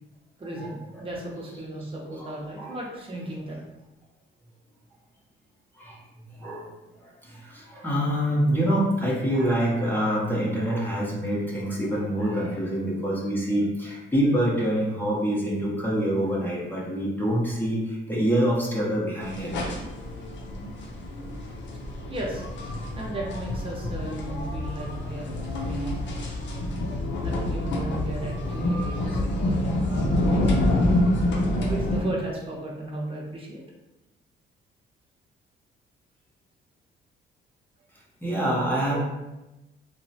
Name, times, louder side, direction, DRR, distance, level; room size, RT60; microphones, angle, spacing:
voice 1, 0.4-3.6 22.1-22.4 23.0-26.0 27.2-30.5 31.5-33.6, right 1 dB, 30° right, -3 dB, 0.8 m, -35 dB
voice 2, 2.2-2.7 5.8-6.0 6.3-6.7 7.0-19.6 38.2-39.0, equal, 10° left, -5 dB, 0.7 m, -26 dB
sound 1, 19.2-32.0, left 1 dB, 65° left, 0.6 m, -27 dB
2.9 x 2.1 x 2.8 m, 0.99 s
cardioid pair, 90°, 20 cm